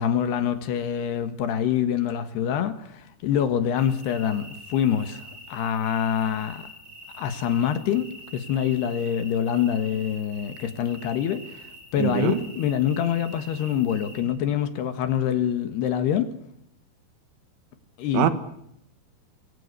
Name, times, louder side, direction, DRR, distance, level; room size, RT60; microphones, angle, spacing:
voice 1, 0.0-6.7 7.1-16.3 18.0-18.3, left 9 dB, 65° left, 3.3 m, -25 dB
sound 1, 3.7-14.2, right 1 dB, 15° right, 7.9 m, -45 dB
voice 2, 12.0-12.5 18.1-18.3, right 11 dB, 85° right, 4.1 m, -23 dB
25.5 x 24.0 x 6.8 m
omnidirectional pair, 5.5 m